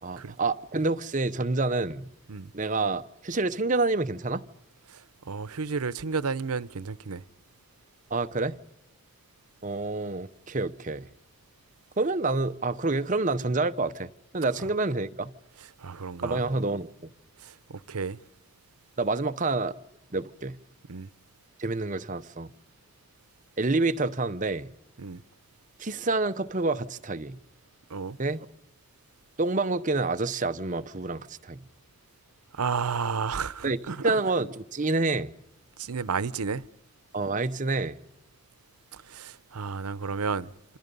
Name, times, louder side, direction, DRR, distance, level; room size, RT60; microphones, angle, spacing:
voice 1, 0.0-2.1 2.5-4.5 8.1-8.6 9.6-11.1 12.0-15.3 16.2-17.1 19.0-19.7 20.1-20.6 21.6-22.5 23.6-24.7 25.8-27.4 28.2-28.5 29.4-31.6 33.6-33.8 34.0-35.3 37.1-38.0, right 3 dB, 35° right, 0.8 m, -28 dB
voice 2, 4.9-7.2 15.8-16.4 17.4-18.2 20.9-21.1 25.0-25.2 27.9-28.2 32.5-34.2 35.8-36.6 38.9-40.5, right 5 dB, 85° right, 0.8 m, -32 dB
27.5 x 27.0 x 5.4 m
head